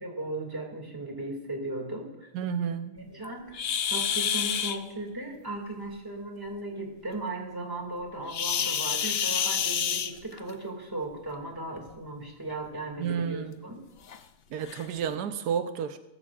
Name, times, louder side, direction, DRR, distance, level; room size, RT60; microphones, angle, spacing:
voice 1, 0.0-2.3 2.9-3.6 3.9-13.8, right 2 dB, 15° right, 2.2 m, -37 dB
voice 2, 2.3-3.0 13.0-13.6 14.5-16.0, right 7 dB, 90° right, 1.3 m, -31 dB
sound 1, 3.5-4.8 8.3-10.5 11.8-11.9 12.5-12.6 13.2-13.3 14.1-14.2 14.7-14.8, left 8 dB, 60° left, 0.6 m, -28 dB
18.5 x 13.5 x 2.5 m
omnidirectional pair, 1.7 m